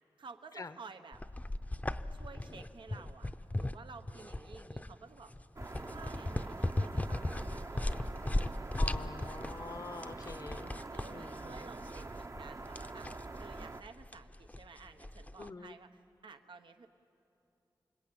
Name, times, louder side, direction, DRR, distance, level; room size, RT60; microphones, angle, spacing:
voice 1, 0.2-1.2 2.1-5.3 5.9-9.4 10.9-13.1 13.4-16.9, right 4 dB, 80° right, 7 dB, 1.1 m, -53 dB
sound 1, 1.1-15.5, left 1 dB, 20° left, 0.7 m, -38 dB
sound 2, 5.6-13.8, right 3 dB, 40° right, 0.9 m, -45 dB
voice 2, 8.8-10.7 11.1-11.7 15.4-15.8, left 3 dB, 45° left, 12 dB, 0.9 m, -46 dB
29.0 x 20.5 x 8.8 m, 2.8 s
cardioid pair, 55°, 8 cm